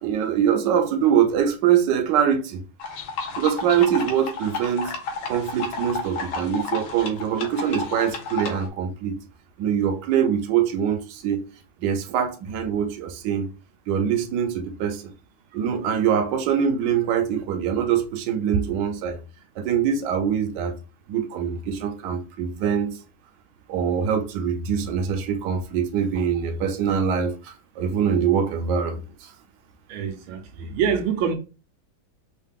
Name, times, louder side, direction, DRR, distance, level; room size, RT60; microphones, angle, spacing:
voice 1, 0.0-2.6 3.4-4.9 5.3-9.2 9.6-11.4 11.8-13.5 13.9-15.1 15.5-19.2 19.6-20.7 21.1-23.0 23.7-29.3, right 8 dB, 65° right, 1.3 m, -23 dB
sound 1, 2.8-8.7, left 4 dB, 90° left, 1.7 m, -32 dB
voice 2, 29.9-31.4, right 7 dB, 85° right, 1.5 m, -25 dB
4.7 x 2.4 x 3.6 m
omnidirectional pair, 2.2 m